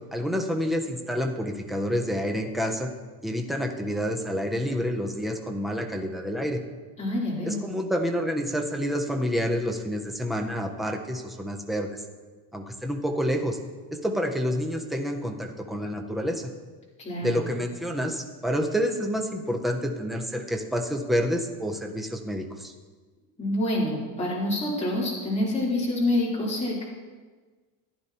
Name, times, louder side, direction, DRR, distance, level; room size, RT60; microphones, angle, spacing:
voice 1, 0.1-2.9 3.2-6.6 7.4-12.0 12.5-13.6 14.0-16.5 17.2-22.7, equal, ahead, 3 dB, 0.3 m, -28 dB
voice 2, 7.0-7.6 17.0-17.4 23.4-26.8, left 1 dB, 15° left, -6 dB, 2.9 m, -27 dB
15.0 x 10.5 x 2.8 m, 1.4 s
cardioid pair, 170°, 43 cm